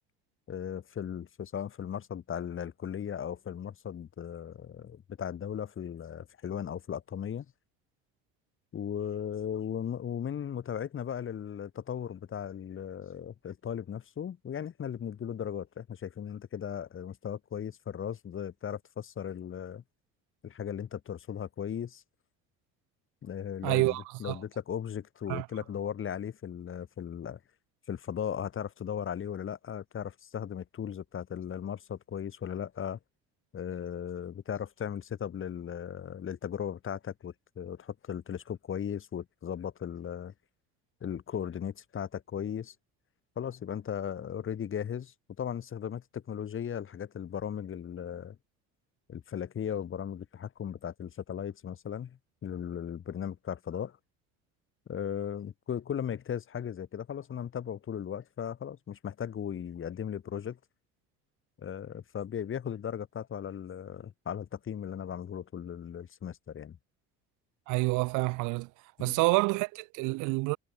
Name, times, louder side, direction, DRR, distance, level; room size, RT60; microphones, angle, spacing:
voice 1, 0.5-7.4 8.7-19.8 20.4-22.0 23.2-27.4 27.9-33.0 33.5-40.3 41.0-42.7 43.4-48.4 49.1-54.0 54.9-60.6 61.6-66.8 69.0-69.2, left 8 dB, 40° left, 3.2 m, -37 dB
voice 2, 23.6-24.4 25.3-25.5 67.7-68.7 69.0-70.6, right 25 dB, 70° right, 1.0 m, -28 dB
supercardioid pair, 85°, 31 cm